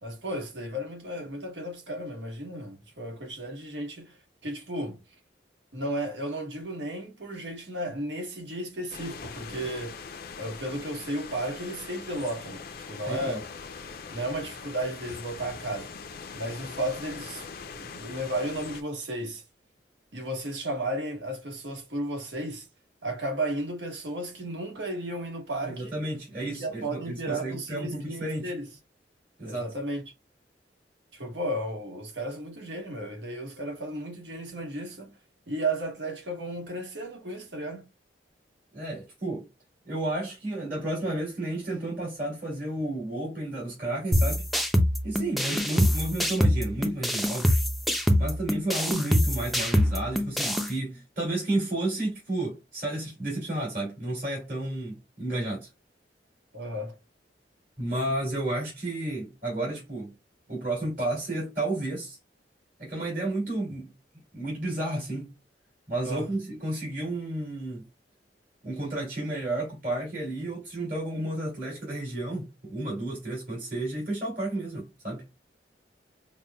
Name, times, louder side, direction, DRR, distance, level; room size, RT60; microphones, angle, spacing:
voice 1, 0.0-5.0 5.7-10.0 10.4-13.5 14.1-16.0 16.3-19.4 20.1-22.7 23.0-25.9 26.4-28.7 29.4-30.1 31.1-35.1 35.5-37.9 56.5-57.0 66.0-66.3, right 1 dB, 80° right, 1.2 m, -34 dB
sound 1, 8.9-18.8, left 5 dB, 60° left, 0.5 m, -42 dB
voice 2, 13.1-13.4 25.6-28.5 29.4-29.7 38.7-39.5 39.8-44.4 45.0-47.6 48.2-55.7 57.8-60.1 60.5-62.2 62.8-63.9 64.3-65.4 65.9-67.9 68.6-75.2, right 1 dB, 55° right, 2.4 m, -32 dB
sound 2, 44.1-50.7, equal, ahead, 0.4 m, -25 dB
5.3 x 2.2 x 2.2 m
head